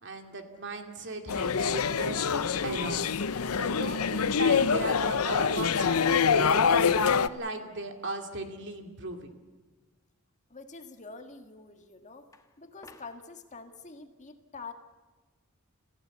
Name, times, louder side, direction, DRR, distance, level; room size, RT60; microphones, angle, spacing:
voice 1, 0.0-9.3, right 2 dB, 55° right, 5 dB, 2.5 m, -37 dB
sound 1, 1.3-7.3, left 6 dB, 80° left, 0.7 m, -25 dB
sound 2, 3.2-5.4 5.8-6.7 12.3-13.2, left 1 dB, 15° left, 1.4 m, -52 dB
voice 2, 10.5-12.3 12.6-14.7, left 4 dB, 35° left, 6 dB, 1.7 m, -46 dB
27.0 x 15.0 x 8.2 m, 1.3 s
head